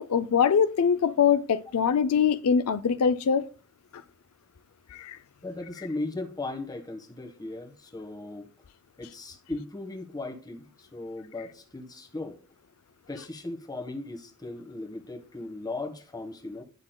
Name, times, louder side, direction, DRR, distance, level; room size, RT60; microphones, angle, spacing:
voice 1, 0.0-3.5 4.9-5.2 11.4-11.5 13.2-13.3, left 7 dB, 70° left, 0.4 m, -23 dB
voice 2, 5.4-8.5 9.0-12.4 13.1-16.6, left 2 dB, 15° left, 1.3 m, -37 dB
10.5 x 5.9 x 2.2 m
head